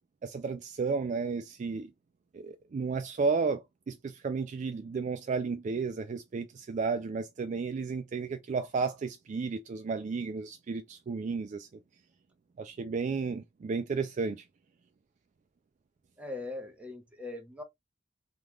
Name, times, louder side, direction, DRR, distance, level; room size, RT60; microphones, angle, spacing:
voice 1, 0.2-1.9 2.3-11.7 12.6-14.4, right 4 dB, 40° right, 0.3 m, -33 dB
voice 2, 16.2-17.6, left 2 dB, 5° right, 0.8 m, -40 dB
3.5 x 2.4 x 3.0 m
head